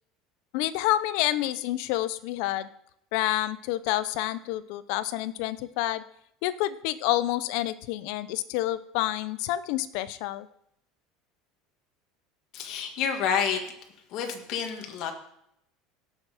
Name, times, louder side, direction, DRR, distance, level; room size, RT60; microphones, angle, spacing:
voice 1, 0.5-2.7 3.1-6.0 6.4-10.5, left 15 dB, 60° left, 15 dB, 0.6 m, -28 dB
voice 2, 12.5-13.6 14.1-15.1, left 7 dB, 45° left, 4 dB, 1.8 m, -29 dB
17.0 x 6.5 x 5.0 m, 0.75 s
cardioid pair, 165°, 0 cm